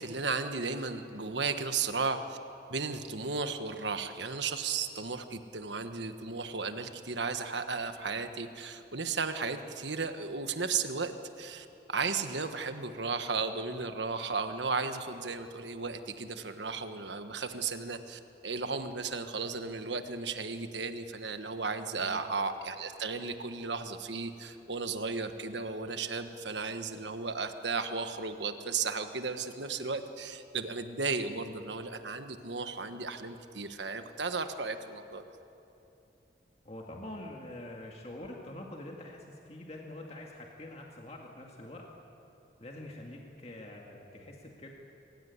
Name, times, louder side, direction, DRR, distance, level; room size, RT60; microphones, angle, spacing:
voice 1, 0.0-2.4 2.7-35.2, right 4 dB, 80° right, 8 dB, 1.4 m, -35 dB
voice 2, 36.6-41.9 42.6-44.7, left 1 dB, 35° left, 0 dB, 2.0 m, -45 dB
25.5 x 16.0 x 9.6 m, 2.8 s
head